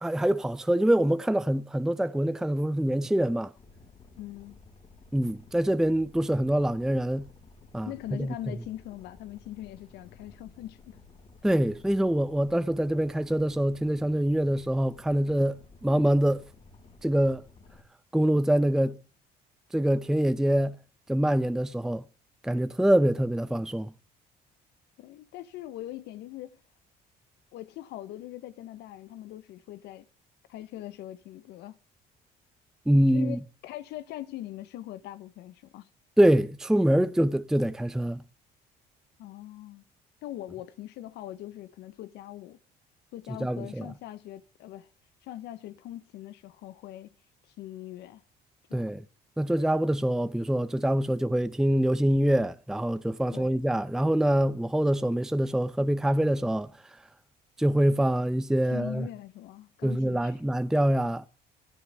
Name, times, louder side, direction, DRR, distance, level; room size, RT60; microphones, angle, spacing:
voice 1, 0.0-3.5 5.1-7.3 7.7-8.3 11.4-16.4 17.0-17.4 18.1-19.0 19.7-20.8 21.1-22.0 22.4-23.9 32.9-33.4 36.2-38.2 43.3-43.9 48.7-49.0 49.4-56.7 57.6-59.1 59.8-61.2, right 1 dB, 5° right, 0.5 m, -25 dB
Boat Water vehicle, 3.5-17.8, left 4 dB, 35° left, 4.5 m, -54 dB
voice 2, 4.2-4.6 7.9-11.0 25.0-26.6 27.5-30.1 30.5-31.8 33.1-35.9 39.2-39.8 40.2-42.6 43.1-44.9 45.2-47.1 47.4-48.2 48.7-48.9 53.3-53.6 58.7-60.4, left 14 dB, 85° left, 0.9 m, -41 dB
16.0 x 13.0 x 3.4 m
cardioid pair, 110°, 17 cm